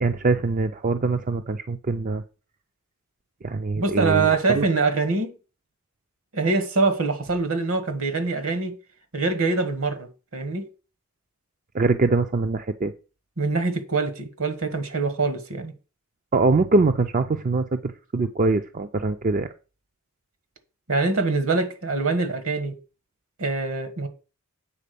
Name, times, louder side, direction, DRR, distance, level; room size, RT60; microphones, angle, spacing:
voice 1, 0.0-2.2 3.4-4.7 11.7-12.9 16.3-19.5, right 3 dB, 35° right, 0.4 m, -23 dB
voice 2, 3.8-5.3 6.3-8.7 9.1-10.7 13.4-15.7 20.9-22.8 23.4-24.1, right 3 dB, 65° right, 1.5 m, -24 dB
8.6 x 4.0 x 6.8 m
head